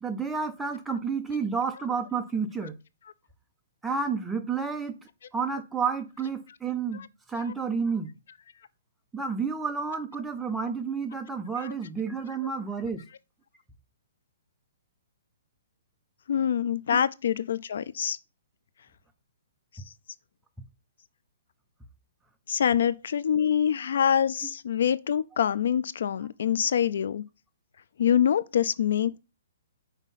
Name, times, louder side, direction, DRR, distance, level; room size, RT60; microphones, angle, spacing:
voice 1, 0.0-2.8 3.8-4.9 5.3-8.1 9.1-13.1 16.9-17.0, right 5 dB, 5° right, 0.5 m, -30 dB
voice 2, 16.3-18.2 22.5-27.2 28.0-29.2, left 8 dB, 60° left, 0.3 m, -25 dB
5.6 x 4.5 x 4.1 m
hypercardioid pair, 165°, 0 cm